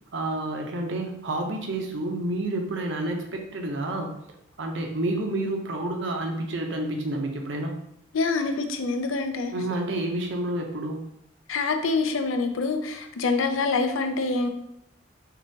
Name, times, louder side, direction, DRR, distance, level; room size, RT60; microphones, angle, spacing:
voice 1, 0.1-4.2 4.6-7.8 9.5-11.1, right 1 dB, 65° right, 2 dB, 0.7 m, -29 dB
voice 2, 8.1-9.5 11.5-14.5, left 3 dB, 90° left, 6 dB, 0.5 m, -26 dB
6.5 x 2.4 x 2.8 m, 0.79 s
head